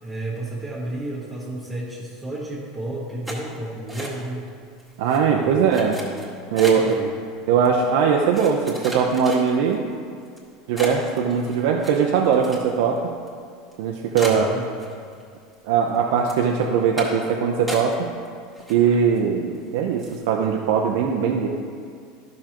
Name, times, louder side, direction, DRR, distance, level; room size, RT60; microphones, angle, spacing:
voice 1, 0.0-4.4 5.3-6.0 6.7-7.1 14.1-14.8, right 1 dB, 10° right, -8 dB, 1.4 m, -32 dB
sound 1, 3.2-4.5 4.8-5.2 5.7-7.0 7.6-7.7 8.3-9.8 10.3-10.4 10.8-13.0 13.3-13.4 13.7-13.8 14.1-15.2 15.5-16.0 16.3-16.5 17.0-17.3 17.7-18.3 18.5-19.2 19.5-19.7 20.0-20.2, right 1 dB, 5° left, 1.7 m, -34 dB
voice 2, 5.0-6.0 6.5-7.0 7.5-10.0 10.7-13.0 13.8-14.5 15.6-17.9 18.7-21.5, right 6 dB, 75° right, 0 dB, 0.6 m, -20 dB
12.0 x 6.3 x 3.0 m, 2.2 s
supercardioid pair, 140°, 0 cm